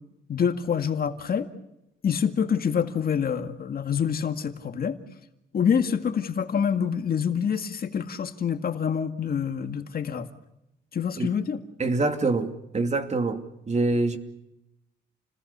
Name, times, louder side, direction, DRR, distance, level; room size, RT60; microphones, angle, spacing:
voice 1, 0.3-1.5 2.0-5.0 5.5-10.3 10.9-11.6, left 7 dB, 50° left, 7 dB, 2.0 m, -26 dB
voice 2, 11.8-14.2, right 3 dB, 35° right, 7 dB, 2.6 m, -25 dB
29.5 x 20.5 x 6.9 m, 0.88 s
cardioid pair, 90°, 20 cm